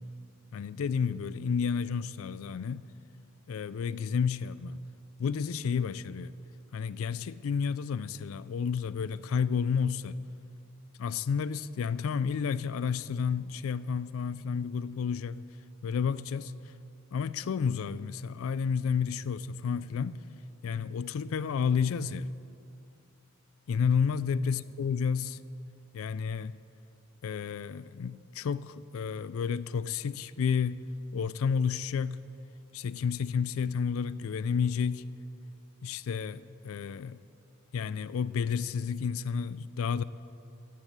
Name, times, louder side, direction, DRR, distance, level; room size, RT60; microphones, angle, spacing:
voice 1, 0.5-2.8 3.5-4.8 5.2-6.3 6.7-10.2 11.0-15.4 15.8-16.5 17.1-20.2 20.6-22.3 23.7-25.4 25.9-26.6 27.2-30.9 31.1-32.2 32.7-35.2 35.8-37.2 37.7-40.0, left 6 dB, 75° left, 0.4 m, -31 dB
13.5 x 9.0 x 8.0 m
head